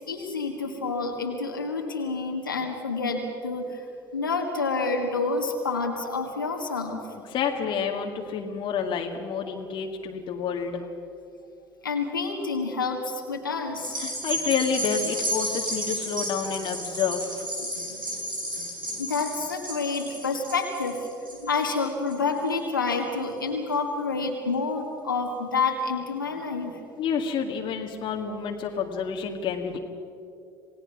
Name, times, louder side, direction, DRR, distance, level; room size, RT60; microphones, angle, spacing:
voice 1, 0.1-3.8 4.1-7.0 11.8-14.0 17.6-18.0 19.0-21.0 21.4-26.8, left 4 dB, 85° left, 2 dB, 1.9 m, -28 dB
voice 2, 7.3-10.9 14.0-17.5 27.0-29.8, left 6 dB, 45° left, 2 dB, 1.9 m, -29 dB
sound 1, 13.8-22.4 22.9-23.0, right 1 dB, 90° right, 4.5 m, -32 dB
27.5 x 18.5 x 6.2 m, 2.6 s
figure-of-eight pair, 60°, 11 cm